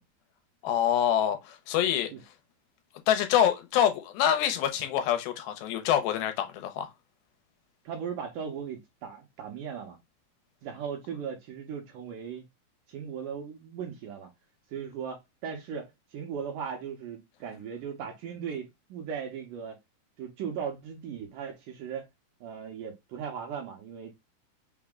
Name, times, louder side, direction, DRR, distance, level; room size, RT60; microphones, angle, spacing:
voice 1, 0.6-2.1 3.1-6.9, left 10 dB, 85° left, 2.5 m, -26 dB
voice 2, 7.9-10.0 10.6-12.5 12.9-14.3 14.7-19.8 20.2-22.1 22.4-24.1, right 7 dB, 75° right, 2.0 m, -38 dB
5.8 x 2.1 x 3.6 m
omnidirectional pair, 4.4 m